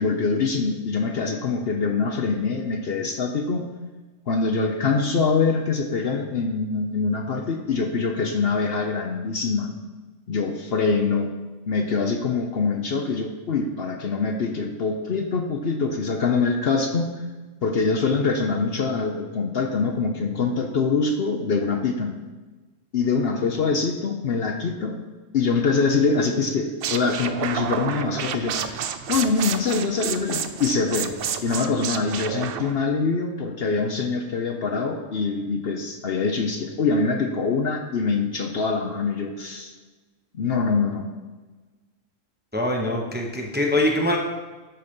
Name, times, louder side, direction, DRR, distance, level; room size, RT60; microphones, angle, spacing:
voice 1, 0.0-3.7 4.3-9.7 10.3-11.3 11.7-17.1 17.6-22.2 22.9-25.0 25.3-28.8 29.1-31.1 31.4-39.7 40.3-41.1, left 4 dB, 55° left, 3 dB, 0.9 m, -24 dB
sound 1, 26.8-32.7, right 8 dB, 60° right, 0.6 m, -30 dB
voice 2, 42.5-44.2, left 1 dB, 10° right, 0 dB, 0.8 m, -23 dB
12.0 x 4.1 x 5.3 m, 1.3 s
omnidirectional pair, 1.3 m